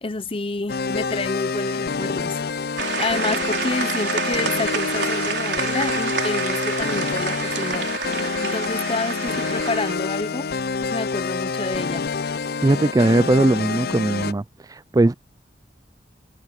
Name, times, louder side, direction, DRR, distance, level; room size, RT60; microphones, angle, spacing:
voice 1, 0.0-2.4 2.9-7.9 8.4-10.5 10.8-12.1, left 3 dB, 30° left, 0.9 m, -28 dB
sound 1, 0.7-14.3, left 5 dB, 60° left, 0.5 m, -27 dB
sound 2, 2.8-9.9, right 6 dB, 75° right, 4.1 m, -28 dB
voice 2, 12.6-14.4 14.9-15.1, right 2 dB, 20° right, 0.4 m, -18 dB
head